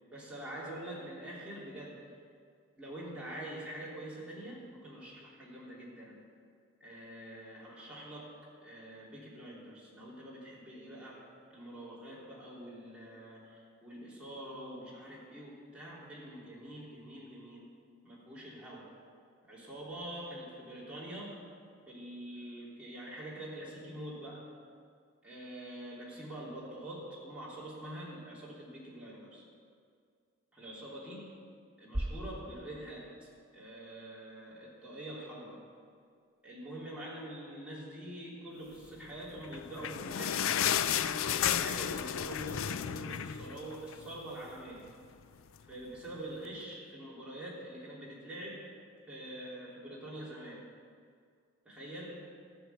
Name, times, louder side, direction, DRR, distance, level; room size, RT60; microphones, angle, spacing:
voice 1, 0.1-2.1 2.8-6.2 6.8-17.6 18.0-19.0 19.5-21.5 21.9-24.6 25.2-29.4 30.5-31.4 31.8-35.7 36.4-44.9 45.7-48.7 49.0-50.7 51.6-52.4, right 1 dB, 5° right, -7 dB, 3.1 m, -45 dB
sound 1, 31.9-34.0, right 1 dB, 50° right, 2.4 m, -40 dB
sound 2, 39.4-44.1 44.5-44.6 44.9-45.1 45.7-45.8, left 9 dB, 70° left, 0.4 m, -32 dB
13.5 x 6.4 x 9.2 m, 2.2 s
head